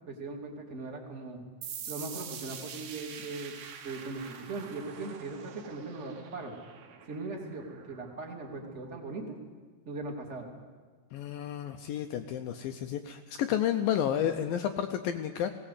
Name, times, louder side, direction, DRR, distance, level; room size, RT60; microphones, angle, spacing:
voice 1, 0.1-1.4 1.9-3.5 3.8-6.5 7.1-9.4 9.8-10.5, right 3 dB, 20° right, 1 dB, 2.1 m, -39 dB
sound 1, 1.6-9.0, right 7 dB, 70° right, 3.3 m, -46 dB
voice 2, 11.1-15.5, left 10 dB, 75° left, 7 dB, 2.2 m, -31 dB
19.0 x 17.5 x 8.3 m, 1.5 s
omnidirectional pair, 4.8 m